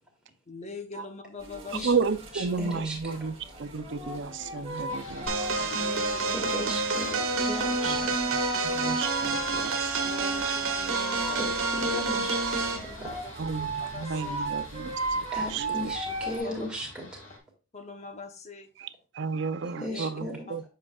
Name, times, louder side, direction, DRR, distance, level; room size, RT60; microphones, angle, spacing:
voice 1, 0.5-1.9 5.7-6.7 7.6-7.7 8.3-8.8 10.0-11.6 12.9-14.4 15.6-15.7 16.3-16.6 17.7-18.7 19.8-20.1 20.5-20.6, left 3 dB, 35° left, 0.8 m, -43 dB
sound 1, 1.4-16.4, right 2 dB, 30° right, 1.8 m, -37 dB
voice 2, 1.8-5.7 7.8-8.1 8.6-10.1 10.5-10.6 13.4-15.7 18.8-20.6, right 5 dB, 60° right, 0.5 m, -33 dB
voice 3, 2.3-3.2 6.3-8.3 11.3-13.1 15.3-17.0 19.8-20.4, equal, 5° right, 2.0 m, -37 dB
sound 2, 4.9-17.4, left 2 dB, 60° left, 1.8 m, -48 dB
sound 3, 5.3-12.9, right 3 dB, 80° right, 1.2 m, -28 dB
7.5 x 5.6 x 2.3 m
head